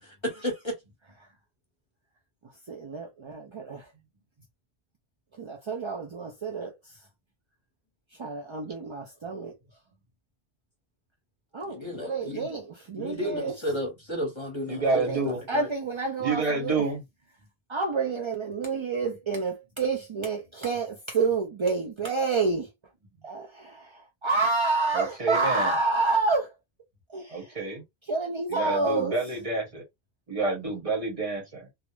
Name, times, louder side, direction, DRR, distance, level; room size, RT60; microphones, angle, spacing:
voice 1, 0.0-0.8 11.7-12.5 13.0-15.7, equal, 30° left, 0.9 m, -33 dB
voice 2, 2.4-3.9 5.3-7.1 8.1-9.6 11.5-13.6 14.9-15.2 15.5-16.9 17.7-22.7 23.2-26.6 27.1-27.6 28.0-29.2, right 3 dB, 55° right, 0.3 m, -29 dB
voice 3, 14.7-15.4 16.2-17.0 24.9-25.7 27.3-27.8 28.5-29.8 30.3-31.7, right 3 dB, 35° right, 0.9 m, -28 dB
2.4 x 2.1 x 3.0 m
omnidirectional pair, 1.1 m